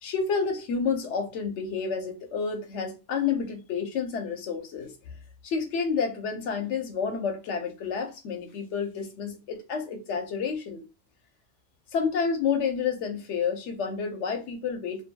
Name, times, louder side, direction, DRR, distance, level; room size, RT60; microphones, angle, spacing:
voice 1, 0.0-4.9 5.4-10.8 11.9-15.0, left 6 dB, 80° left, 1.0 m, -29 dB
2.7 x 2.6 x 2.2 m
omnidirectional pair, 1.2 m